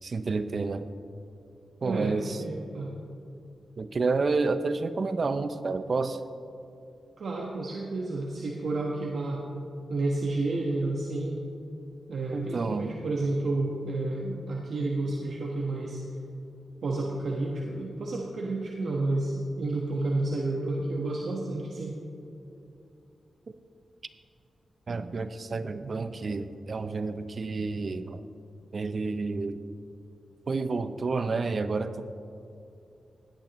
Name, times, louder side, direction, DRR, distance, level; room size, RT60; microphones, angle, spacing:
voice 1, 0.0-0.9 1.8-2.4 3.8-6.2 12.3-12.9 24.9-28.2 28.7-29.6 30.5-32.0, right 3 dB, 45° right, 11 dB, 0.5 m, -30 dB
voice 2, 1.8-2.1 2.4-3.0 7.2-9.4 9.9-11.4 12.1-16.0 16.8-21.9, right 2 dB, 65° right, -2 dB, 1.2 m, -30 dB
17.5 x 12.0 x 3.0 m, 2.6 s
wide cardioid pair, 110°, 0 cm